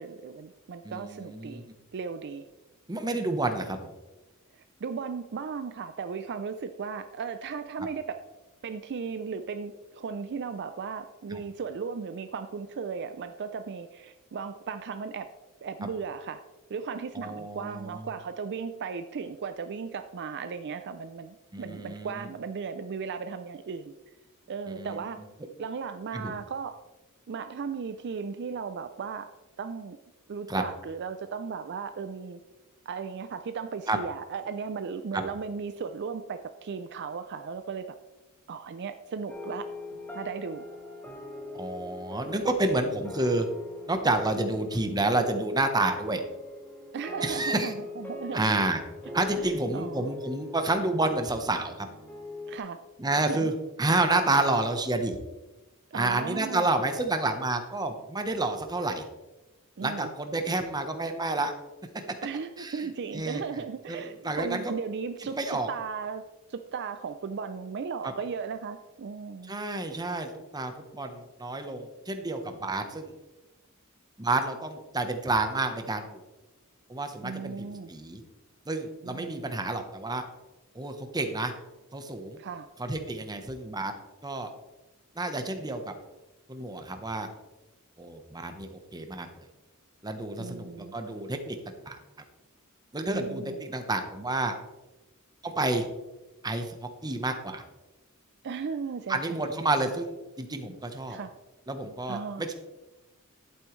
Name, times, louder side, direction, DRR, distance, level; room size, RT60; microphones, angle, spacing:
voice 1, 0.0-2.4 4.5-8.2 8.6-15.3 15.6-16.4 16.7-23.9 24.5-25.2 25.6-26.8 27.3-29.3 29.6-30.0 30.3-32.4 32.9-38.0 38.5-39.7 40.1-40.6 46.9-48.5 49.4-50.1 52.5-52.8 53.3-53.5 55.9-56.7 59.8-60.1 62.2-66.2 66.5-69.6 77.2-77.9 79.0-79.5 82.4-82.7 90.4-90.9 93.1-93.7 98.4-99.4 101.1-101.3 102.1-102.5, right 5 dB, 50° right, 9 dB, 0.4 m, -36 dB
voice 2, 0.8-1.6 2.9-3.9 11.3-11.4 17.1-18.1 21.5-22.3 24.7-25.0 26.1-26.3 30.5-30.6 33.9-34.0 35.1-35.2 41.5-43.5 43.9-46.2 47.2-47.7 48.3-48.8 49.1-51.9 53.0-53.5 53.8-55.2 55.9-59.0 59.8-61.5 62.6-62.9 63.1-63.4 63.9-64.7 65.3-65.7 69.4-73.1 74.2-76.2 76.9-78.2 78.7-80.2 80.7-81.5 81.9-82.4 82.8-83.9 84.2-84.5 85.2-86.0 86.5-87.3 88.0-89.3 90.0-91.6 91.8-92.0 92.9-94.5 95.4-95.9 96.4-97.6 99.1-101.2 101.7-102.5, right 2 dB, 20° right, 6 dB, 1.0 m, -29 dB
sound 1, 39.3-52.6, left 2 dB, 10° left, 1.2 m, -41 dB
11.0 x 8.7 x 3.2 m, 1.1 s
head